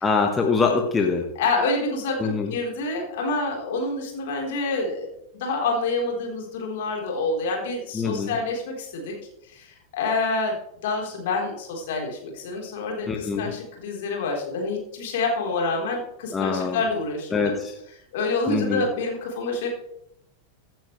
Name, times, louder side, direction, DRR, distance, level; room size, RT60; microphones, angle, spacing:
voice 1, 0.0-1.3 2.2-2.5 7.9-8.3 13.1-13.5 16.3-16.8 17.3-17.8 18.5-18.8, left 4 dB, 15° left, 2 dB, 1.5 m, -24 dB
voice 2, 1.4-9.2 9.5-17.6 18.1-19.7, left 3 dB, 55° left, 0 dB, 4.0 m, -27 dB
16.0 x 9.1 x 3.3 m, 0.78 s
figure-of-eight pair, 90°, 0 cm